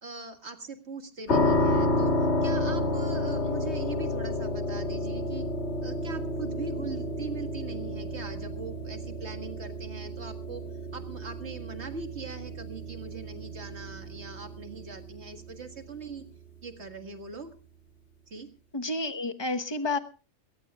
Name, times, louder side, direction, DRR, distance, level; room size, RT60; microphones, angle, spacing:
voice 1, 0.0-5.5 5.8-10.6 10.9-16.2 16.6-17.5 18.3-18.5, right 4 dB, 40° right, 6 dB, 2.0 m, -41 dB
sound 1, 1.3-16.1, left 1 dB, 45° left, 1.8 m, -30 dB
voice 2, 18.7-20.0, left 2 dB, 20° left, 8 dB, 0.9 m, -30 dB
21.5 x 18.0 x 2.4 m, 0.35 s
omnidirectional pair, 1.7 m